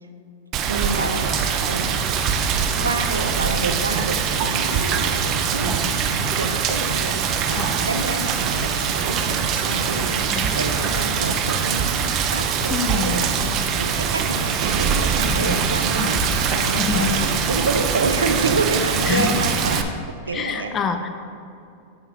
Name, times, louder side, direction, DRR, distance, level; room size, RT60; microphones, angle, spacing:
Rain, 0.5-19.8, right 7 dB, 40° right, 0.6 m, -23 dB
voice 1, 0.7-1.4 1.7-1.9 2.7-13.4 13.7-20.7, right 2 dB, 90° right, 7 dB, 0.5 m, -28 dB
sound 1, 1.4-18.6, right 1 dB, 60° right, 1.0 m, -38 dB
voice 2, 12.7-13.3 15.2-15.6 16.0-16.3 16.8-17.2 19.1-19.6 20.3-21.1, left 6 dB, 30° left, 7 dB, 0.6 m, -27 dB
sound 2, 12.7-12.8 13.3-13.6 14.2-14.4 15.3-15.4 16.1-16.3 16.9-17.0, right 1 dB, 10° right, 1.6 m, -30 dB
9.7 x 5.8 x 2.9 m, 2.6 s
hypercardioid pair, 95°, 0 cm